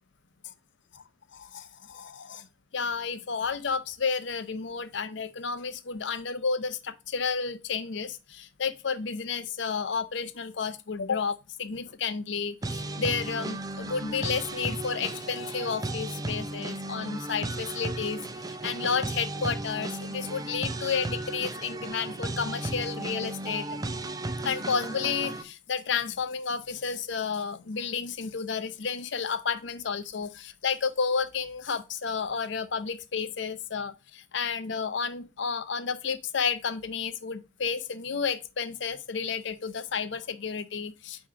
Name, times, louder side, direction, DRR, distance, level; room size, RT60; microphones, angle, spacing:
voice 1, 1.4-2.5 2.7-23.8 24.4-41.3, left 5 dB, 65° left, 0.6 m, -31 dB
sound 1, 12.6-25.4, right 2 dB, 20° right, 0.4 m, -35 dB
8.7 x 3.0 x 4.7 m
head